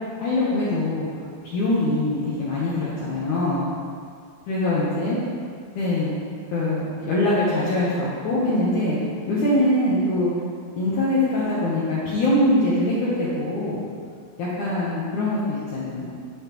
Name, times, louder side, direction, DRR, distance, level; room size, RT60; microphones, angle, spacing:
voice 1, 0.2-1.1 1.4-3.7 4.5-5.2 5.8-6.1 6.5-9.0 9.3-10.3 10.8-13.8 14.4-16.0, left 1 dB, 80° left, -8 dB, 1.7 m, -23 dB
11.5 x 6.5 x 3.1 m, 2.1 s
omnidirectional pair, 5.2 m